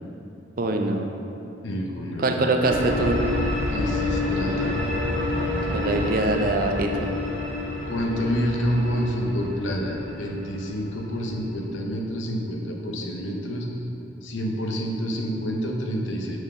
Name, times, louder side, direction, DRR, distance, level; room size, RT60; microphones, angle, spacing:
voice 1, 0.6-1.1 2.2-3.2 5.7-7.1, right 2 dB, 50° right, 4 dB, 0.5 m, -23 dB
voice 2, 1.6-2.7 3.7-4.7 7.9-13.7 14.2-16.4, equal, 85° left, 1 dB, 0.8 m, -28 dB
sound 1, 2.6-11.5, left 2 dB, 70° right, 1.0 m, -28 dB
6.2 x 3.8 x 5.0 m, 2.8 s
head